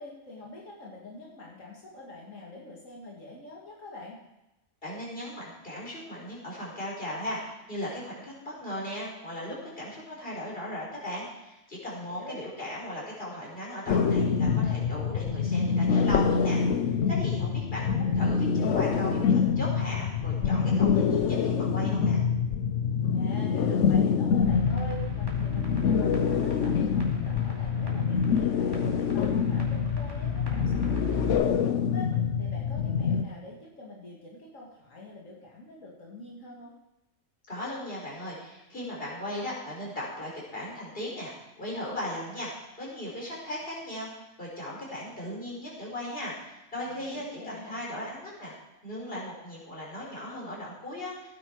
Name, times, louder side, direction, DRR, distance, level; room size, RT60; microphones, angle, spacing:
voice 1, 0.0-4.2 12.0-12.4 23.1-36.7 46.9-47.8, left 1 dB, 85° left, -3 dB, 2.5 m, -45 dB
voice 2, 4.8-7.4 7.7-16.6 17.1-22.2 37.5-48.5 48.8-51.3, left 1 dB, 45° left, -4 dB, 5.1 m, -37 dB
sound 1, 13.9-33.2, left 6 dB, 70° left, 1.0 m, -26 dB
sound 2, 24.4-31.3, left 2 dB, 20° right, 2.7 m, -39 dB
16.5 x 9.9 x 4.7 m, 0.95 s
omnidirectional pair, 1.3 m